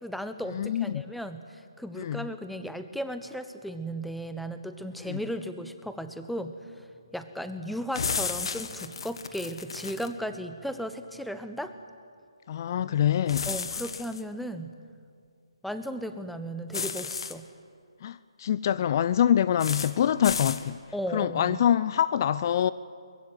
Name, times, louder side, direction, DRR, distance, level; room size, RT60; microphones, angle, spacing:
voice 1, 0.0-6.5 7.1-11.8 13.5-14.7 15.6-17.5 20.9-21.6, equal, ahead, 1.0 m, -35 dB
voice 2, 0.5-1.0 2.0-2.3 5.0-5.2 12.5-13.5 18.0-20.8 21.1-22.7, left 10 dB, 40° left, 0.5 m, -25 dB
sound 1, 7.9-10.1 13.3-14.2 16.7-17.3 19.6-19.9 20.2-20.6, left 5 dB, 60° left, 1.8 m, -33 dB
23.0 x 21.0 x 9.3 m
figure-of-eight pair, 145°, 3 cm